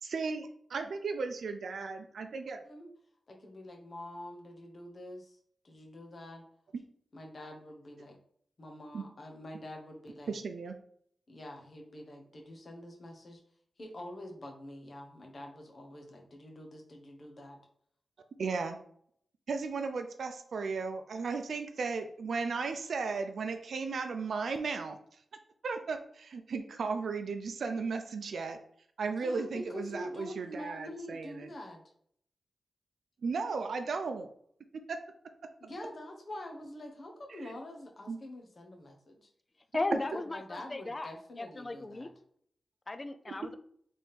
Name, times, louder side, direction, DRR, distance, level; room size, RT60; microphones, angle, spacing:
voice 1, 0.0-2.7 8.9-9.0 10.3-10.7 18.4-18.8 19.5-25.0 25.6-28.6 29.0-31.5 33.2-34.3 34.9-35.0 38.1-38.2 43.4-43.5, right 4 dB, 75° right, 7 dB, 0.4 m, -35 dB
voice 2, 3.3-5.4 5.6-6.4 7.1-8.2 8.6-10.4 11.3-13.4 13.8-17.6 29.2-31.8 35.6-39.3 40.1-42.1, left 1 dB, 45° left, 2 dB, 1.0 m, -46 dB
voice 3, 39.7-41.1 41.4-42.1 42.9-43.5, left 2 dB, 25° left, 9 dB, 0.4 m, -36 dB
3.5 x 3.5 x 4.3 m, 0.65 s
wide cardioid pair, 125°, 0 cm